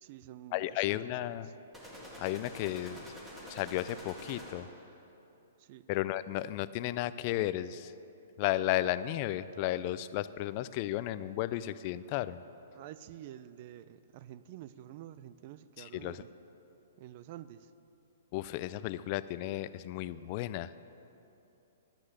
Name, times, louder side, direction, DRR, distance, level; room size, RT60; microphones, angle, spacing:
voice 1, 0.0-1.5 5.6-5.9 12.7-16.3 17.0-17.7, right 12 dB, 45° right, 14 dB, 0.4 m, -49 dB
voice 2, 0.5-1.5 2.2-3.1 3.5-4.7 5.9-7.9 8.4-12.4 15.8-16.2 18.3-20.7, left 14 dB, 40° left, 15 dB, 0.3 m, -34 dB
sound 1, 1.7-4.9, equal, 10° right, 2.0 m, -47 dB
12.0 x 6.2 x 8.0 m, 2.9 s
hypercardioid pair, 140°, 0 cm